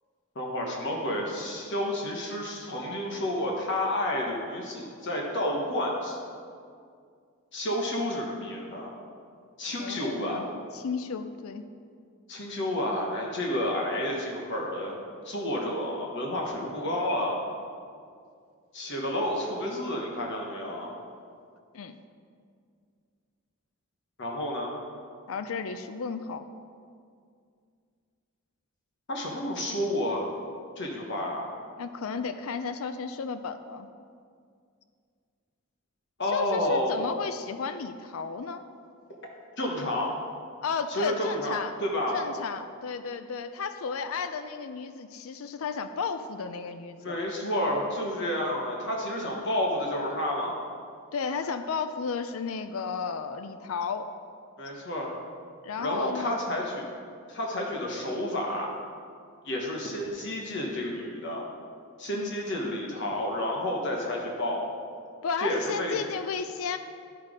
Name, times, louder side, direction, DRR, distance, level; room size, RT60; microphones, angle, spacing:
voice 1, 0.3-6.2 7.5-8.9 9.6-10.4 12.3-15.0 15.2-17.4 18.7-20.9 24.2-24.7 29.1-30.3 30.8-31.5 36.2-37.0 39.6-40.1 41.0-42.2 47.0-50.6 54.6-55.1 55.8-56.9 57.3-58.7 59.4-61.4 62.0-64.6 65.4-66.0, left 1 dB, 55° left, -1 dB, 1.3 m, -30 dB
voice 2, 9.8-10.5 10.7-11.6 21.7-22.0 25.3-26.5 31.8-33.9 36.2-38.7 40.6-41.8 42.1-47.2 51.1-54.1 55.6-56.4 62.1-62.3 65.2-66.8, left 5 dB, 70° left, 10 dB, 0.4 m, -33 dB
11.5 x 5.8 x 5.0 m, 2.2 s
head